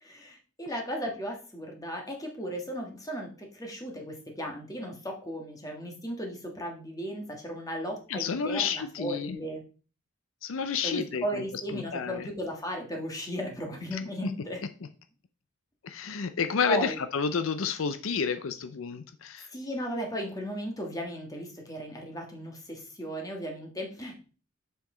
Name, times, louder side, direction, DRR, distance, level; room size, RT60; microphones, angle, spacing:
voice 1, 0.0-9.6 10.8-14.6 16.7-17.0 19.5-24.2, equal, 15° left, 1 dB, 1.6 m, -36 dB
voice 2, 8.1-9.4 10.4-11.4 11.7-12.3 13.9-14.3 15.8-19.5, left 5 dB, 75° left, 10 dB, 0.5 m, -30 dB
7.2 x 5.8 x 3.8 m, 0.38 s
head